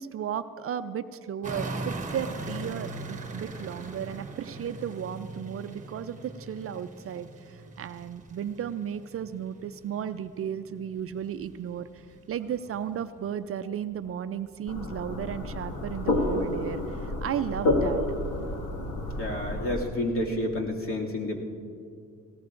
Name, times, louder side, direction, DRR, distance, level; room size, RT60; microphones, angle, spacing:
voice 1, 0.0-18.0, right 9 dB, 50° right, 11 dB, 0.5 m, -34 dB
sound 1, 1.4-13.4 13.7-18.6 19.2-19.3, right 2 dB, 25° right, 1.1 m, -41 dB
sound 2, 14.7-19.8, left 1 dB, 85° left, 2.0 m, -29 dB
voice 2, 19.2-21.4, left 1 dB, 45° left, -2 dB, 2.4 m, -30 dB
19.5 x 17.5 x 2.5 m, 2.4 s
cardioid pair, 90°, 30 cm